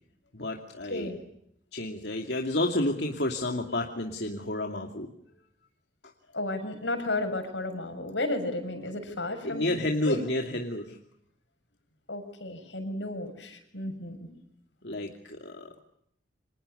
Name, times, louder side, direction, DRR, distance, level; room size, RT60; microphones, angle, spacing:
voice 1, 0.3-1.1 1.7-5.1 9.4-11.0 14.8-15.8, left 1 dB, 65° left, 2 dB, 2.7 m, -30 dB
voice 2, 6.3-9.7 10.0-10.2 12.1-14.3, left 2 dB, 90° left, 7 dB, 6.9 m, -33 dB
30.0 x 26.0 x 6.7 m, 0.73 s
head